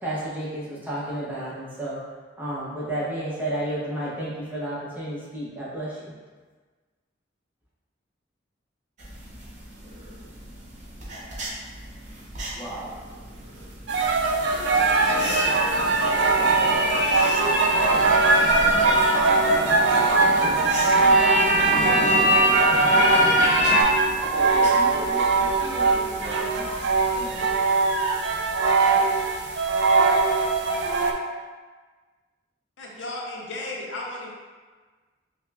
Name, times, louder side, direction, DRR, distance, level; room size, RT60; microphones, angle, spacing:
voice 1, 0.0-2.0 2.4-6.1, right 1 dB, 10° right, -8 dB, 0.6 m, -31 dB
sound 1, 9.0-27.6, right 1 dB, 40° right, 0.8 m, -41 dB
voice 2, 12.5-13.0 16.2-16.7 19.8-21.3 21.6-23.3 24.1-26.7 27.1-27.4 28.8-29.1, equal, 10° left, -9 dB, 1.0 m, -39 dB
sound 2, 13.9-31.1, right 3 dB, 65° right, 0.4 m, -21 dB
sound 3, 14.2-23.8, equal, 30° left, 1.0 m, -24 dB
voice 3, 32.8-34.3, left 2 dB, 75° left, -2 dB, 0.6 m, -34 dB
5.7 x 2.0 x 2.3 m, 1.4 s
head